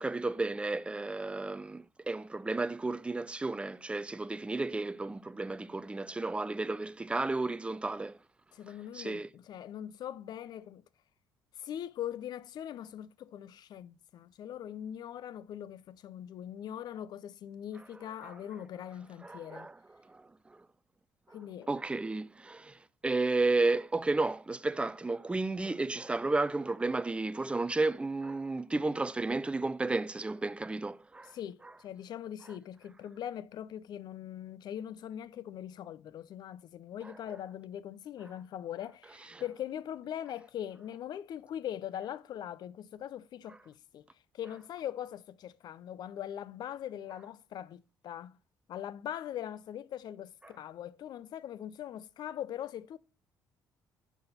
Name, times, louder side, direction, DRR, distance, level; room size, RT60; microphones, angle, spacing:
voice 1, 0.0-8.2 8.9-9.3 18.2-18.3 19.2-19.7 20.1-20.6 21.7-31.3 37.0-37.1 39.3-39.4, right 3 dB, 15° right, 0.4 m, -32 dB
voice 2, 8.5-10.8 11.6-19.7 21.3-21.7 31.3-44.1 44.3-48.4 48.7-53.0, left 10 dB, 60° left, 0.4 m, -41 dB
7.0 x 5.6 x 4.1 m
supercardioid pair, 70°, 8 cm